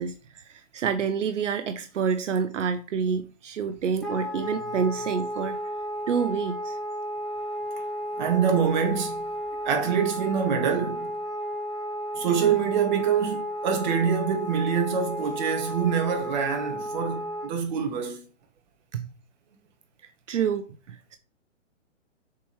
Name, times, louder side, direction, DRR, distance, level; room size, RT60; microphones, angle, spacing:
voice 1, 0.0-5.7 6.1-6.8 18.9-19.1 20.3-21.2, right 6 dB, 70° right, 0.8 m, -28 dB
Wind instrument woodwind instrument, 4.0-17.5, equal, ahead, 0.5 m, -33 dB
voice 2, 8.2-9.3 9.6-11.1 12.1-18.2, right 7 dB, 35° right, 1.6 m, -25 dB
6.9 x 4.7 x 3.1 m
hypercardioid pair, 155°, 38 cm